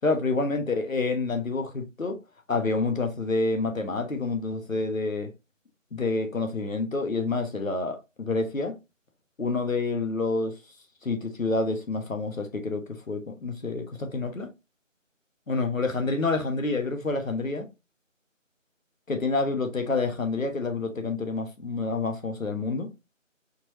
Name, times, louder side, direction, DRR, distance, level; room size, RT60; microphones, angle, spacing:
voice 1, 0.0-2.2 2.5-5.3 5.9-8.7 9.4-10.5 11.0-14.5 15.5-17.7 19.1-22.9, left 3 dB, 85° left, 1.2 m, -28 dB
4.4 x 3.2 x 2.8 m
figure-of-eight pair, 175°, 39 cm